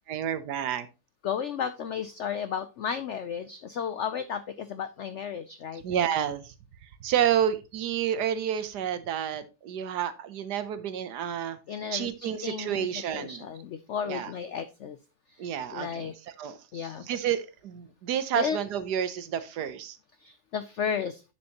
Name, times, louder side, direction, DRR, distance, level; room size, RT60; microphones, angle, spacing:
voice 1, 0.1-0.9 5.8-6.5 6.8-11.6 11.9-13.5 14.1-14.3 15.4-16.1 16.4-16.6 17.1-20.0, right 9 dB, 70° right, 12 dB, 1.3 m, -30 dB
voice 2, 1.2-5.8 11.7-15.0 15.3-16.1 16.7-17.1 18.3-18.6 20.2-21.2, left 7 dB, 85° left, 11 dB, 0.6 m, -33 dB
9.9 x 6.4 x 2.9 m, 0.28 s
omnidirectional pair, 1.9 m